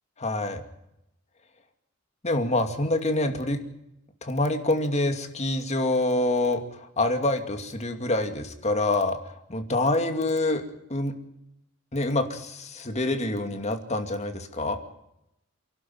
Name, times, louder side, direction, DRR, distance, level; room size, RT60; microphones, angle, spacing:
voice 1, 0.2-0.6 2.2-3.6 4.2-10.6 10.9-11.1 11.9-14.8, left 2 dB, 35° left, 6 dB, 2.5 m, -26 dB
28.5 x 11.5 x 9.3 m, 0.83 s
head